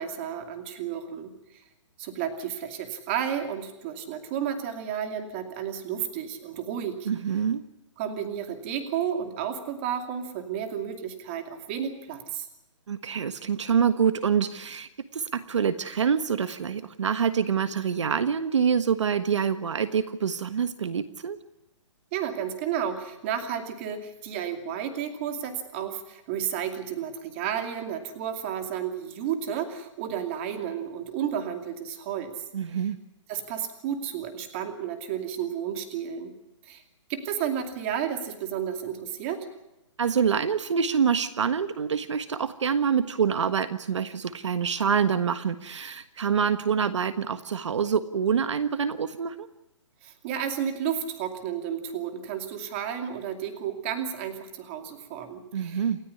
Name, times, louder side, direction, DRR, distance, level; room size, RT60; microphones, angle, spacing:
voice 1, 0.0-1.6 2.0-7.1 8.0-12.5 22.1-32.4 33.3-36.3 36.6-36.8 37.1-39.5 50.0-55.8, right 9 dB, 25° right, 7 dB, 2.5 m, -32 dB
voice 2, 7.0-7.6 12.9-21.4 32.5-33.0 40.0-49.5 55.5-56.0, right 7 dB, 70° right, 11 dB, 1.4 m, -26 dB
28.5 x 14.0 x 9.8 m, 0.93 s
hypercardioid pair, 170°, 16 cm